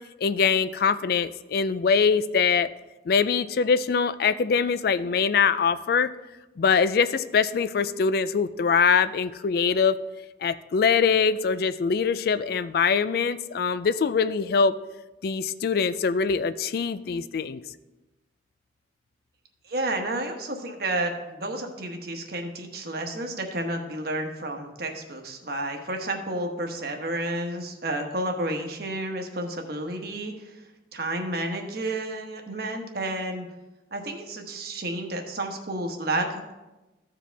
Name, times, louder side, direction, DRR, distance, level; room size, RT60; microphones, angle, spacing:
voice 1, 0.2-2.7 3.1-6.1 6.6-10.0 10.4-14.8 15.2-17.6, left 5 dB, 60° left, 14 dB, 0.4 m, -23 dB
voice 2, 19.6-30.6 30.9-33.5 33.9-36.5, right 1 dB, 60° right, 3 dB, 1.2 m, -31 dB
14.5 x 4.9 x 3.4 m, 1.1 s
head